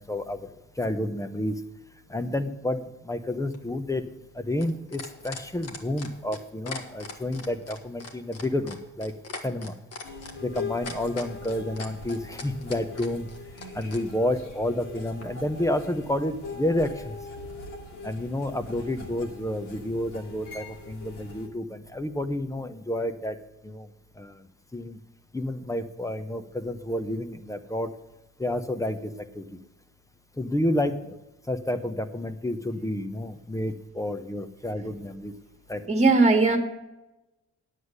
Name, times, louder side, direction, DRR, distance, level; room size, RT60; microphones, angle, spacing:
voice 1, 0.0-1.6 2.1-4.1 4.3-9.1 9.4-9.8 10.4-13.3 13.7-17.2 18.0-23.4 23.6-23.9 24.2-24.4 24.7-25.0 25.3-27.9 28.4-29.6 30.4-31.2 31.5-35.3 35.7-35.9, left 1 dB, 10° left, 9 dB, 0.9 m, -30 dB
sound 1, 3.5-14.0 15.2-15.3, left 4 dB, 55° left, 1.8 m, -40 dB
sound 2, 10.0-21.5, left 3 dB, 85° left, 2.4 m, -41 dB
voice 2, 35.9-36.6, right 3 dB, 20° right, 4 dB, 1.9 m, -18 dB
9.4 x 8.3 x 6.5 m, 0.99 s
cardioid pair, 90°, 30 cm